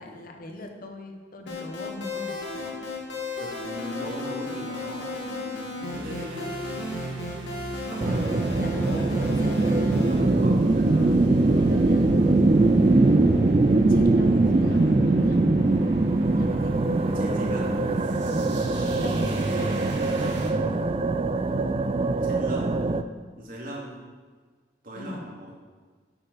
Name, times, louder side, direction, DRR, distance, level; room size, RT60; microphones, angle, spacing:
voice 1, 0.0-2.4 7.9-8.2 8.6-9.7 11.0-12.1 13.9-15.9 16.2-16.8 18.8-20.9 24.9-25.3, left 2 dB, 50° left, 4 dB, 1.2 m, -40 dB
sound 1, 1.5-10.2, left 2 dB, 75° left, 2.1 m, -34 dB
voice 2, 3.4-6.5 7.9-9.1 9.8-11.5 12.5-12.8 13.9-14.1 17.1-17.7 22.2-22.8 23.4-23.9 24.8-25.5, equal, 50° right, -4 dB, 2.6 m, -39 dB
sound 2, 5.9-20.5, right 2 dB, 70° right, 1.7 m, -37 dB
sound 3, 8.0-23.0, right 2 dB, 30° right, 0.4 m, -22 dB
11.5 x 8.3 x 4.3 m, 1.5 s
head